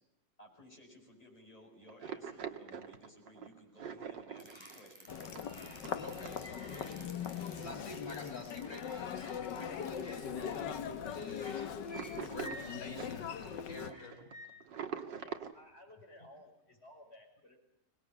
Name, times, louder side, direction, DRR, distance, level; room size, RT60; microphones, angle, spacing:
voice 1, 0.4-5.5 14.2-14.3, equal, 20° left, 0 dB, 7.4 m, -58 dB
sound 1, 1.9-6.8 7.2-7.4 8.2-8.3 8.6-8.7 9.1-9.6 10.0-10.1 10.3-10.4 10.8-11.3 11.8-15.5, right 7 dB, 80° right, 2.3 m, -45 dB
sound 2, 4.4-14.5, equal, 15° right, 5.8 m, -53 dB
Human voice, 5.1-13.9, left 8 dB, 70° left, 1.8 m, -41 dB
voice 2, 6.0-7.1 7.5-11.7 12.2-14.2, left 2 dB, 50° left, 3 dB, 7.0 m, -48 dB
voice 3, 14.6-17.6, left 1 dB, 35° left, 1 dB, 6.8 m, -58 dB
24.5 x 20.0 x 9.8 m, 0.82 s
omnidirectional pair, 1.9 m